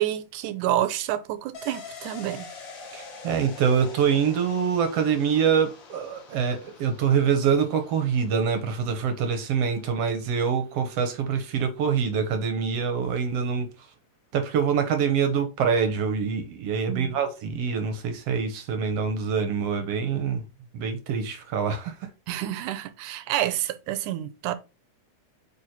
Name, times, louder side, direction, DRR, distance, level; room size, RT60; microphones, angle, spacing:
voice 1, 0.0-2.5 16.9-17.2 22.3-24.5, right 13 dB, 90° right, 2.2 m, -28 dB
sound 1, 1.5-10.9 11.3-11.4, left 4 dB, 45° left, 2.1 m, -46 dB
voice 2, 2.9-13.7 14.3-20.4 20.7-21.9, right 6 dB, 65° right, 1.8 m, -25 dB
8.4 x 4.2 x 2.9 m
omnidirectional pair, 3.6 m